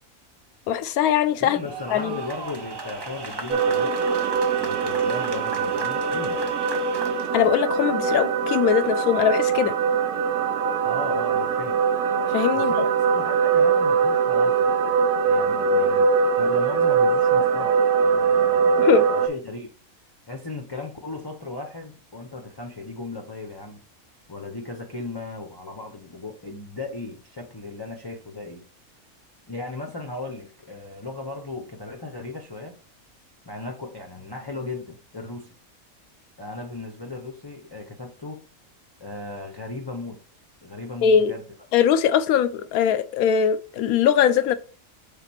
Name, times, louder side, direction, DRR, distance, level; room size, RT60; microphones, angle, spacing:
voice 1, 0.7-1.6 1.9-2.2 7.3-9.8 12.3-12.8 18.8-19.1 41.0-41.3 41.7-44.6, left 8 dB, 85° left, 1.1 m, -21 dB
voice 2, 1.4-4.0 4.6-6.5 10.8-11.8 12.5-12.9 13.1-14.7 15.3-19.7 20.3-23.8 24.3-28.6 29.5-32.8 33.5-35.6 36.4-38.4 39.0-40.2 40.6-41.5, left 2 dB, 25° left, 0.6 m, -36 dB
sound 1, 1.5-7.5, right 3 dB, 30° right, 0.4 m, -37 dB
sound 2, 3.5-19.3, right 5 dB, 80° right, 1.3 m, -22 dB
5.8 x 3.8 x 4.3 m
omnidirectional pair, 1.5 m